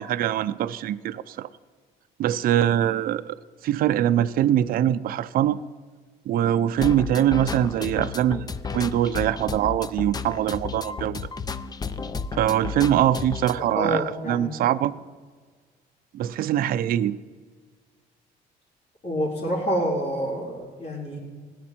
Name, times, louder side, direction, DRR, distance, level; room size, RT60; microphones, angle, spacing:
voice 1, 0.0-1.5 2.2-3.4 3.6-5.6 6.3-8.5 8.7-11.3 12.4-14.9 16.1-17.2, right 11 dB, 60° right, 14 dB, 0.5 m, -23 dB
sound 1, 6.8-13.5, left 5 dB, 25° left, 0.5 m, -32 dB
voice 2, 13.6-14.6 19.0-21.2, equal, 45° left, -9 dB, 3.7 m, -27 dB
17.5 x 10.0 x 4.4 m, 1.5 s
cardioid pair, 110°, 17 cm